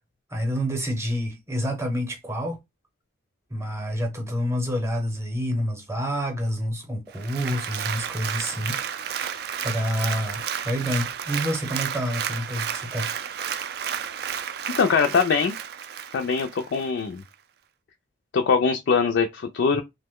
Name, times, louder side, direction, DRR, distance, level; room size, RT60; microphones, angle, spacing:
voice 1, 0.3-2.6 3.5-8.8 9.6-13.1, equal, 15° right, 0.7 m, -28 dB
Applause, 7.1-16.9 17.3-17.4, right 8 dB, 55° right, 0.3 m, -32 dB
voice 2, 14.8-15.6 16.1-17.2 18.3-19.8, left 5 dB, 65° left, 0.3 m, -22 dB
3.0 x 2.1 x 3.5 m
head